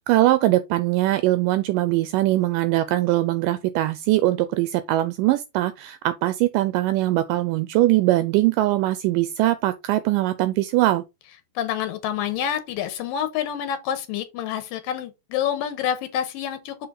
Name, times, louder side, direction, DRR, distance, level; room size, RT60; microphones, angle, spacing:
voice 1, 0.0-11.0, right 16 dB, 80° right, 2.1 m, -21 dB
voice 2, 11.6-16.8, left 9 dB, 80° left, 2.5 m, -27 dB
6.7 x 4.7 x 3.9 m
omnidirectional pair, 4.0 m